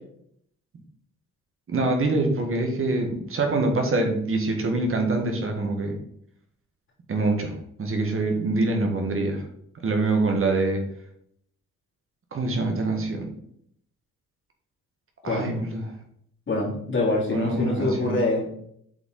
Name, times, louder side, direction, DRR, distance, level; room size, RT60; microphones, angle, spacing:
voice 1, 1.7-5.9 7.1-9.4 9.8-10.8 12.3-13.2 15.2-15.9 17.3-18.2, right 2 dB, 45° right, 3 dB, 1.7 m, -25 dB
voice 2, 16.5-18.5, left 2 dB, 40° left, -3 dB, 2.9 m, -25 dB
7.9 x 4.8 x 3.9 m, 0.69 s
cardioid pair, 90°, 30 cm